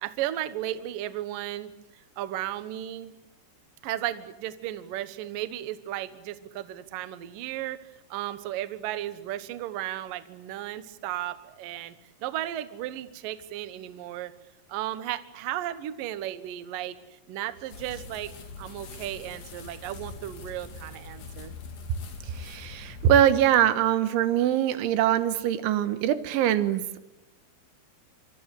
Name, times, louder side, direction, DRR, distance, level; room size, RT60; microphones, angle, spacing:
voice 1, 0.0-3.1 3.8-11.9 12.2-14.3 14.7-18.3 18.6-21.5, right 13 dB, 65° right, 12 dB, 2.3 m, -35 dB
sound 1, 17.7-23.3, left 4 dB, 65° left, 5.2 m, -43 dB
voice 2, 22.3-27.0, right 10 dB, 85° right, 11 dB, 3.7 m, -23 dB
26.0 x 25.0 x 8.2 m, 0.93 s
omnidirectional pair, 5.3 m